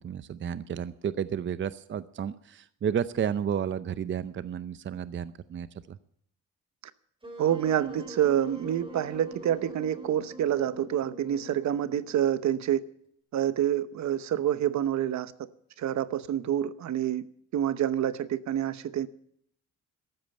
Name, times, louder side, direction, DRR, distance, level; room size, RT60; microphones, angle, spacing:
voice 1, 0.0-6.0, right 8 dB, 40° right, 0.6 m, -32 dB
Wind instrument woodwind instrument, 7.2-12.3, right 1 dB, 15° right, 3.9 m, -44 dB
voice 2, 7.4-12.8 13.3-15.3 15.8-17.2 17.5-19.1, right 10 dB, 65° right, 0.9 m, -27 dB
13.5 x 8.9 x 10.0 m
cardioid pair, 90°, 30 cm